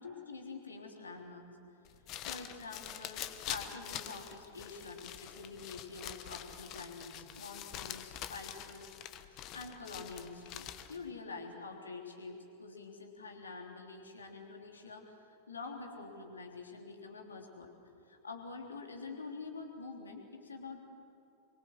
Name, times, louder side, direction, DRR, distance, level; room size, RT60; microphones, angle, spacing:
voice 1, 0.0-1.5 2.2-8.9 9.2-17.7 18.1-20.8, left 4 dB, 75° left, 2 dB, 3.3 m, -46 dB
sound 1, 1.8-11.1, left 11 dB, 40° left, 1.3 m, -45 dB
26.0 x 23.5 x 7.6 m, 2.7 s
figure-of-eight pair, 90°, 0 cm